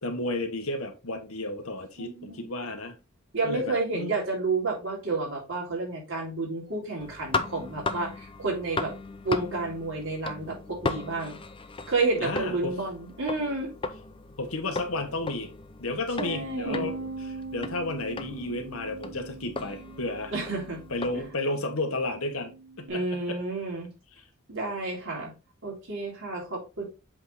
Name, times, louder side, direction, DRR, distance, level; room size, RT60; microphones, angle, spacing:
voice 1, 0.0-3.0 3.4-4.2 12.2-12.8 14.4-15.5 15.8-20.3 20.9-23.4, left 2 dB, 75° left, 1.4 m, -32 dB
voice 2, 2.0-2.5 3.3-8.9 9.2-11.4 11.9-13.7 16.2-16.9 20.3-20.8 21.1-21.2 22.9-23.9 24.5-25.3 25.6-26.8, right 3 dB, 60° right, 3.4 m, -30 dB
sound 1, 7.0-21.3, left 3 dB, 25° left, 0.5 m, -37 dB
Bass guitar, 16.7-22.9, right 3 dB, 80° right, 1.1 m, -41 dB
7.9 x 3.7 x 4.0 m
head